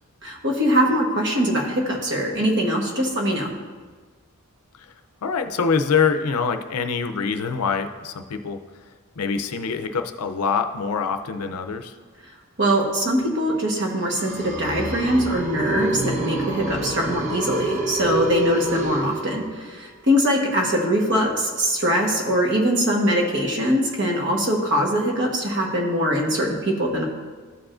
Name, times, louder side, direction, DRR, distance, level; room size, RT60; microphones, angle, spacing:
voice 1, 0.2-3.6 12.6-27.0, equal, 55° right, 0 dB, 1.2 m, -22 dB
voice 2, 5.2-8.6 9.2-11.9, left 5 dB, 90° left, 8 dB, 0.5 m, -24 dB
sound 1, 13.9-19.7, right 2 dB, 35° right, 0.9 m, -28 dB
13.0 x 4.8 x 2.5 m, 1.4 s
head